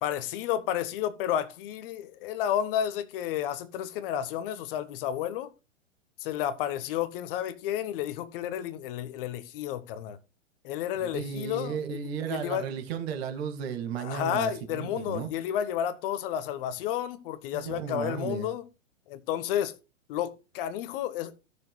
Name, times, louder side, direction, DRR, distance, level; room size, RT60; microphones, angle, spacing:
voice 1, 0.0-5.5 6.2-10.2 10.6-12.0 12.3-12.7 14.0-18.6 19.1-19.7 20.1-21.3, left 10 dB, 45° left, 1.0 m, -31 dB
voice 2, 11.0-15.3 17.5-18.5, right 7 dB, 50° right, 2.0 m, -34 dB
16.5 x 6.5 x 2.2 m
hypercardioid pair, 115°, 38 cm